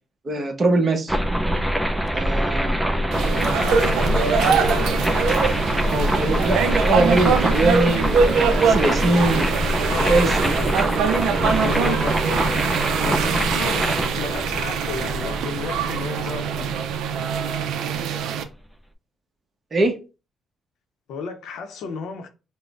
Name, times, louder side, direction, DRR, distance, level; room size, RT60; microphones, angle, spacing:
voice 1, 0.2-1.2 2.1-3.3 5.9-9.5 10.1-10.5 19.7-19.9, right 2 dB, 40° right, 0.9 m, -22 dB
sound 1, 1.1-18.0, equal, 5° right, 0.5 m, -24 dB
sound 2, 3.1-18.4, right 6 dB, 85° right, 0.4 m, -23 dB
voice 2, 3.5-5.1 8.7-10.3 10.6-10.7 11.4-12.8 13.0-16.7 21.1-22.3, left 5 dB, 80° left, 0.7 m, -33 dB
5.1 x 2.1 x 2.4 m
cardioid pair, 90°, 0 cm